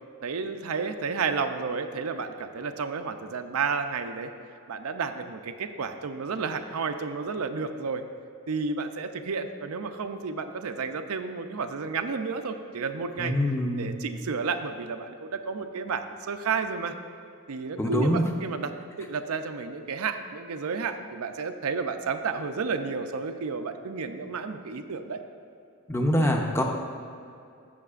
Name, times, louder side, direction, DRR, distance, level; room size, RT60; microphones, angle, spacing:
voice 1, 0.2-4.3 4.7-8.0 8.5-13.3 13.8-16.9 17.5-25.2, right 5 dB, 75° right, 7 dB, 0.5 m, -31 dB
voice 2, 13.2-13.9 17.8-18.2 25.9-26.6, equal, 10° left, 2 dB, 0.6 m, -24 dB
14.5 x 6.5 x 2.5 m, 2.5 s
head